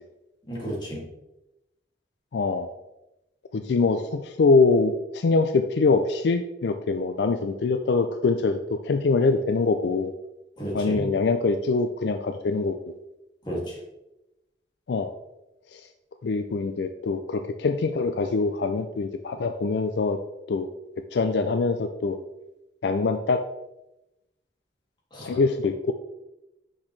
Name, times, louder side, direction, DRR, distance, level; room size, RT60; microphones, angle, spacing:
voice 1, 0.5-1.0 10.6-11.1 13.4-13.7 25.1-25.4, equal, 25° left, -5 dB, 2.3 m, -32 dB
voice 2, 2.3-2.7 3.5-10.1 10.7-12.8 14.9-15.1 15.7-15.8 16.2-20.2 20.5-20.7 21.1-22.2 22.8-23.4 25.2-25.9, left 4 dB, 75° left, 7 dB, 0.4 m, -24 dB
6.2 x 6.1 x 3.2 m, 0.93 s
head